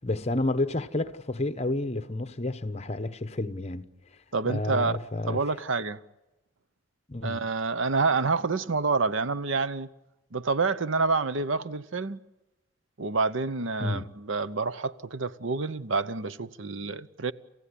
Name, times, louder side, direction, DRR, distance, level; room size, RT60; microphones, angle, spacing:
voice 1, 0.0-3.9 4.4-5.4 7.1-7.4 13.8-14.1, left 2 dB, 30° left, 1.0 m, -30 dB
voice 2, 4.3-5.0 5.3-6.0 7.2-9.9 10.3-12.2 13.0-17.3, right 4 dB, 75° right, 0.8 m, -28 dB
28.5 x 15.5 x 9.9 m
head